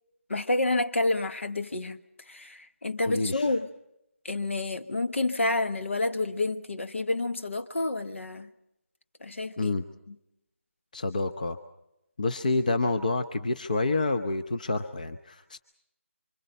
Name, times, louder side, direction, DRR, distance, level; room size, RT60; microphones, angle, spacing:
voice 1, 0.3-2.0 2.3-3.7 4.2-8.5 9.2-9.8 10.1-10.2, left 2 dB, 65° left, 1.3 m, -29 dB
voice 2, 3.0-3.5 9.6-9.8 10.9-11.6 12.2-15.6, left 3 dB, 35° left, 0.9 m, -28 dB
26.5 x 25.5 x 5.4 m
figure-of-eight pair, 175°, 7 cm